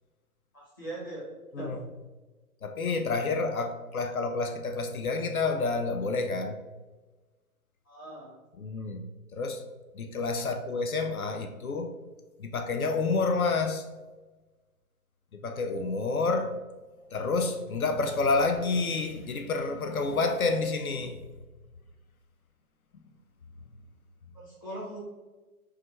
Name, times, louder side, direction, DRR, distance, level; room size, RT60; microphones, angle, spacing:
voice 1, 0.8-1.3 1.6-1.7 7.9-8.3 10.3-10.4 24.3-25.0, right 1 dB, 15° left, 0.6 m, -40 dB
voice 2, 2.6-6.6 8.6-9.1 9.3-9.6 9.9-12.0 12.4-13.9 15.3-16.6 17.1-21.3, left 3 dB, 65° left, 0.5 m, -29 dB
4.7 x 2.3 x 3.0 m
figure-of-eight pair, 135°, 46 cm